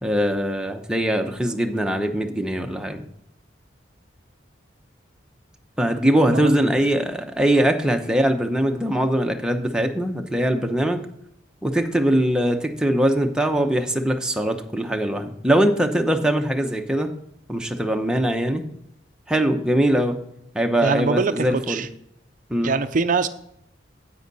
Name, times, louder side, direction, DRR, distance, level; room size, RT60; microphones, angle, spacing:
voice 1, 0.0-3.0 5.8-11.1 11.6-17.1 17.5-18.6 19.3-20.2 20.5-21.9 22.5-22.7, right 1 dB, 5° right, 4 dB, 0.8 m, -22 dB
voice 2, 20.8-21.9 22.6-23.3, right 4 dB, 45° right, 11 dB, 0.5 m, -23 dB
10.0 x 8.3 x 4.1 m, 0.75 s
head